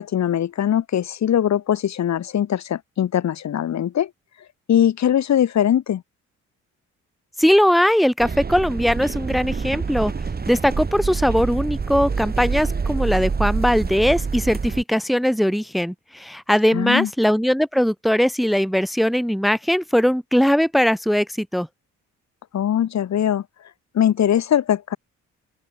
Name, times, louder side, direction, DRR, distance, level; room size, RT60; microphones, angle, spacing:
voice 1, 0.0-4.1 4.7-6.0 16.7-17.1 22.5-23.4 23.9-25.0, left 10 dB, 65° left, 3.7 m, -21 dB
voice 2, 7.4-10.1 10.5-21.7, equal, ahead, 1.9 m, -20 dB
sound 1, 8.2-14.8, right 5 dB, 30° right, 3.8 m, -26 dB
open air
cardioid pair, 90°, 30 cm